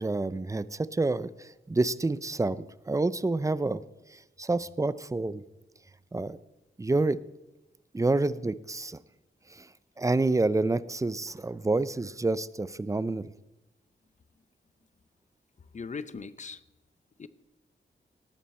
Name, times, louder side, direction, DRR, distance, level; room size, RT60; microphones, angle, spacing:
voice 1, 0.0-3.8 4.1-5.4 6.1-6.4 6.8-7.2 7.9-9.0 9.5-9.7 10.0-13.3, right 2 dB, 15° right, 17 dB, 0.4 m, -28 dB
voice 2, 15.6-16.6 17.2-17.3, left 5 dB, 35° left, 15 dB, 0.7 m, -39 dB
19.0 x 14.0 x 4.3 m, 0.97 s
wide cardioid pair, 145°, 20 cm